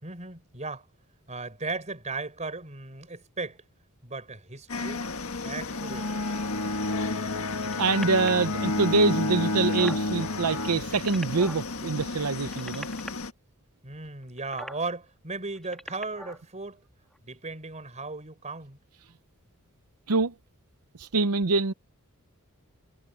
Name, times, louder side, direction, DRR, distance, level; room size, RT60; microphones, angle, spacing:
voice 1, 0.0-0.9 1.3-3.6 4.0-5.1 5.4-6.1 13.8-16.8 17.2-18.8, right 3 dB, 30° right, 4.7 m, -36 dB
sound 1, 4.7-13.3, left 3 dB, 65° left, 1.7 m, -35 dB
Bowed string instrument, 5.7-11.5, left 2 dB, 85° left, 1.6 m, -30 dB
sound 2, 7.6-8.4 9.1-9.2 9.4-10.0 10.7-11.6 12.4-13.1 14.4-14.8 15.5-16.4 17.1-17.2, equal, ahead, 1.7 m, -41 dB
voice 2, 7.8-12.9 20.1-20.3 21.0-21.7, right 4 dB, 90° right, 0.8 m, -25 dB
head